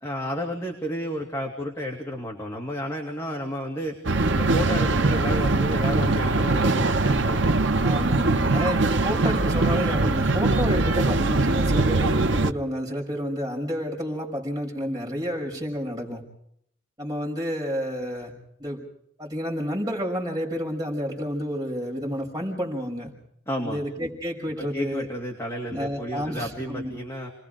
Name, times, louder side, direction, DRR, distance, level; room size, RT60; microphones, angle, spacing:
voice 1, 0.0-4.0 4.3-7.6 23.5-23.8 24.6-27.3, equal, 15° left, 0 dB, 2.6 m, -32 dB
sound 1, 4.0-12.5, right 2 dB, 70° right, 1.0 m, -22 dB
voice 2, 7.8-16.2 17.0-18.3 18.6-18.8 19.2-23.1 23.6-25.1 25.7-27.0, equal, 20° right, 0 dB, 5.8 m, -30 dB
29.5 x 21.0 x 5.1 m, 0.73 s
head